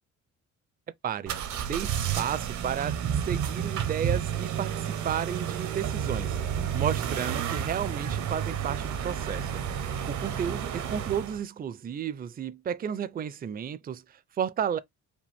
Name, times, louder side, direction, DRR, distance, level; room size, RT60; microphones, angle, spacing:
sound 1, 1.3-11.4, right 8 dB, 75° right, 1.1 m, -31 dB
voice 1, 1.6-2.9 3.3-6.4 6.7-14.8, right 8 dB, 30° right, 0.5 m, -33 dB
5.1 x 2.5 x 3.4 m
cardioid pair, 90°, 30 cm